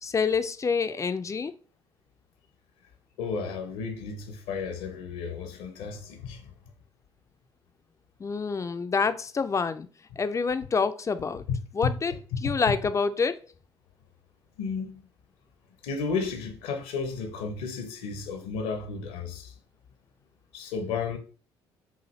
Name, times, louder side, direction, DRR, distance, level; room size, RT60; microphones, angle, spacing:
voice 1, 0.0-1.5 8.2-9.9 10.2-11.4 11.7-12.1 12.4-13.4, left 5 dB, 25° left, 0.4 m, -27 dB
voice 2, 3.2-6.5 11.8-12.0 12.4-12.7 14.6-15.0 15.8-19.5 20.5-21.2, left 5 dB, 65° left, 0.8 m, -33 dB
5.5 x 2.5 x 3.1 m
figure-of-eight pair, 50°, 13 cm